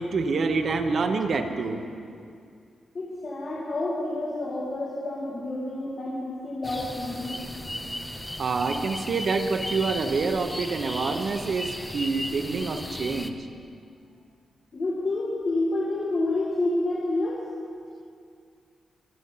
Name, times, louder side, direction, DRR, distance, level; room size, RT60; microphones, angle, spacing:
voice 1, 0.0-1.8 8.4-13.5, right 4 dB, 45° right, 6 dB, 1.0 m, -27 dB
voice 2, 2.9-7.4 14.7-17.4, left 2 dB, 35° left, -6 dB, 2.0 m, -29 dB
sound 1, 6.6-13.3, left 1 dB, 5° left, 0.6 m, -36 dB
23.5 x 8.1 x 5.7 m, 2.3 s
wide cardioid pair, 165°, 0 cm